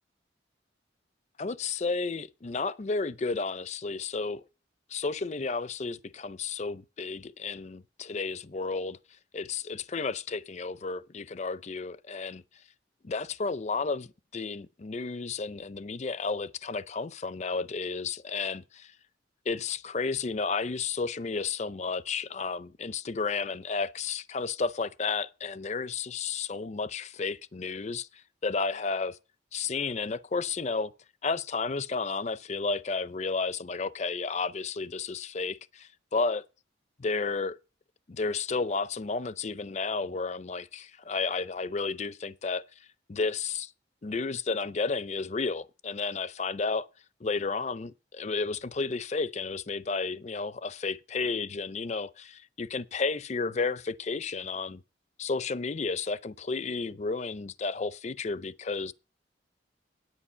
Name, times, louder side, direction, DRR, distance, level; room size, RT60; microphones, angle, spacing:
voice 1, 1.4-4.4 4.9-9.0 9.3-12.4 13.0-18.9 19.5-29.2 29.5-30.9 31.2-36.4 37.0-37.6 38.1-42.6 43.1-43.7 44.0-46.9 47.2-54.8 55.2-58.9, left 4 dB, 40° left, 0.5 m, -32 dB
10.0 x 9.1 x 5.5 m
head